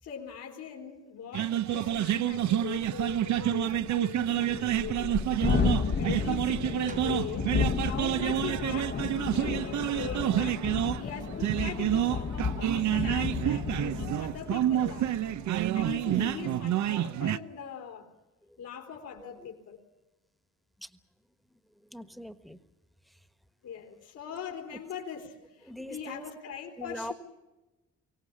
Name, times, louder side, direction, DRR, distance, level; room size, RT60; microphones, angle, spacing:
voice 1, 0.0-5.2 6.0-15.2 15.7-18.1 18.6-19.8 23.6-27.1, left 7 dB, 80° left, 1 dB, 3.7 m, -41 dB
sound 1, 1.3-17.4, right 12 dB, 70° right, 0.8 m, -29 dB
Thunderstorm, 2.0-2.1 2.4-2.5 2.8-16.4, left 5 dB, 35° left, 1.1 m, -33 dB
voice 2, 6.1-6.6 16.1-16.7 19.2-19.3 20.8-20.9 21.9-22.6 25.6-26.3 26.8-27.1, equal, ahead, 10 dB, 1.4 m, -41 dB
sound 2, 6.9-8.7, right 5 dB, 25° right, 1.0 m, -45 dB
23.5 x 17.5 x 8.6 m, 1.1 s
cardioid pair, 90°, 30 cm